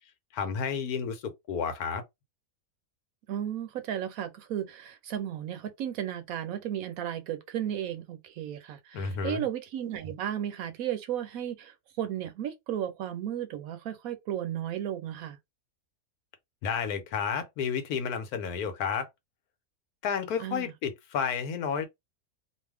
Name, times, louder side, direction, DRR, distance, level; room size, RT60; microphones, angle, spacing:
voice 1, 0.3-2.0 8.9-9.5 16.6-19.1 20.0-21.9, left 6 dB, 80° left, 1.2 m, -31 dB
voice 2, 3.3-15.4 20.4-20.7, right 10 dB, 75° right, 1.0 m, -34 dB
2.6 x 2.3 x 3.3 m
omnidirectional pair, 1.6 m